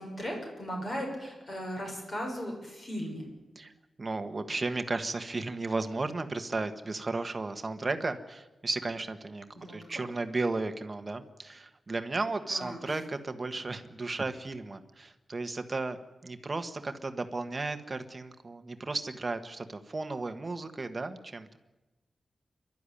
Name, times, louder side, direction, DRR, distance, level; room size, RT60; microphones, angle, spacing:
voice 1, 0.0-3.3 9.5-10.0 12.5-12.9, equal, 30° left, 1 dB, 6.6 m, -37 dB
voice 2, 4.0-16.0 16.2-21.6, right 3 dB, 25° right, 8 dB, 1.4 m, -34 dB
28.0 x 12.0 x 10.0 m, 1.1 s
wide cardioid pair, 180°, 0 cm